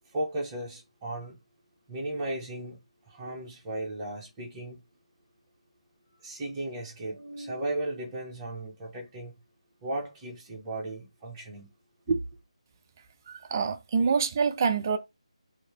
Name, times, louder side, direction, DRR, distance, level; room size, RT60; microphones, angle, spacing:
voice 1, 0.1-1.4 1.9-2.8 3.1-4.8 6.2-9.3 9.8-11.7 12.1-12.2, right 2 dB, 15° right, 1.2 m, -35 dB
voice 2, 13.3-15.0, right 5 dB, 30° right, 0.5 m, -26 dB
3.1 x 2.8 x 3.3 m
figure-of-eight pair, 160°, 4 cm